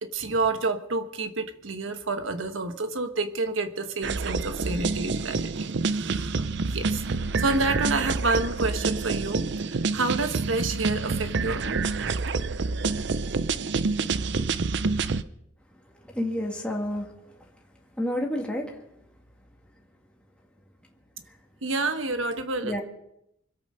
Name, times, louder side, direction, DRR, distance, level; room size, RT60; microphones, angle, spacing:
voice 1, 0.0-7.0 7.4-11.9 21.6-22.8, right 3 dB, 85° right, 8 dB, 1.3 m, -29 dB
sound 1, 4.0-15.2, right 4 dB, 60° right, 0.6 m, -28 dB
voice 2, 16.0-17.1 17.4-17.5 18.0-18.8 22.6-22.8, left 1 dB, 5° left, -1 dB, 2.1 m, -29 dB
25.0 x 8.6 x 5.5 m, 0.79 s
head